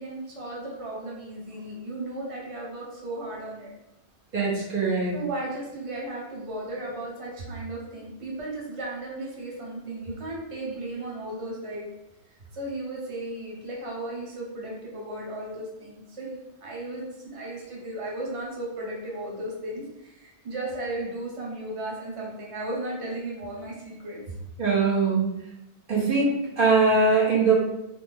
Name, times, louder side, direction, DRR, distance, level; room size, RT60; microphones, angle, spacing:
voice 1, 0.0-3.7 5.1-11.8 12.5-24.2, right 1 dB, 35° right, -4 dB, 0.8 m, -35 dB
voice 2, 4.3-5.1 24.6-25.2 25.9-27.5, right 4 dB, 55° right, -6 dB, 1.1 m, -22 dB
3.2 x 2.1 x 3.4 m, 0.90 s
omnidirectional pair, 1.1 m